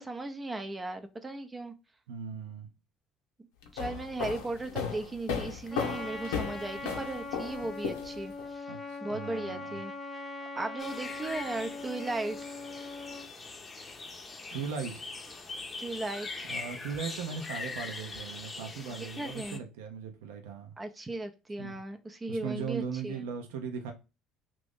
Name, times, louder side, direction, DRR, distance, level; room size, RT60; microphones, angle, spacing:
voice 1, 0.0-1.7 3.7-8.7 9.0-9.9 10.6-12.4 15.8-16.5 19.0-19.6 20.8-23.2, right 2 dB, 20° right, 0.5 m, -36 dB
voice 2, 2.1-2.7 8.7-9.8 14.5-15.0 16.5-20.7 21.6-21.8 22.3-23.9, right 6 dB, 80° right, 0.6 m, -38 dB
sound 1, 3.6-8.5, left 6 dB, 80° left, 0.7 m, -35 dB
Trumpet, 5.7-13.3, left 3 dB, 5° left, 1.0 m, -41 dB
sound 2, 10.8-19.6, left 3 dB, 30° left, 0.7 m, -42 dB
2.9 x 2.5 x 3.5 m
hypercardioid pair, 70°, 0 cm